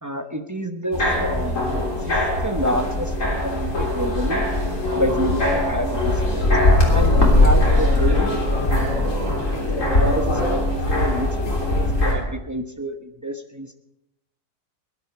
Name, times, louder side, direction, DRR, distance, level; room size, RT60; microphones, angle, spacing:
voice 1, 0.0-3.1 3.4-4.5 4.9-6.5 6.9-9.2 9.8-10.6 10.9-13.7, equal, 15° right, 6 dB, 0.7 m, -28 dB
sound 1, 0.9-12.1, left 1 dB, 45° left, 3.8 m, -20 dB
20.0 x 11.5 x 4.9 m, 0.89 s
omnidirectional pair, 1.8 m